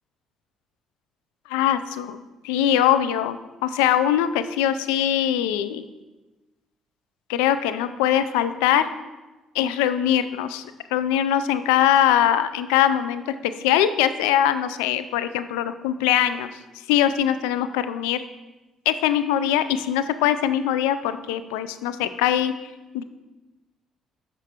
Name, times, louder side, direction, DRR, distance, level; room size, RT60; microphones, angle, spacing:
voice 1, 1.5-5.8 7.3-8.8 9.5-10.6 10.9-16.5 16.9-18.2 18.9-22.5 22.9-23.0, left 10 dB, 85° left, 12 dB, 0.3 m, -22 dB
11.0 x 4.4 x 2.9 m, 1.1 s
hypercardioid pair, 60°, 0 cm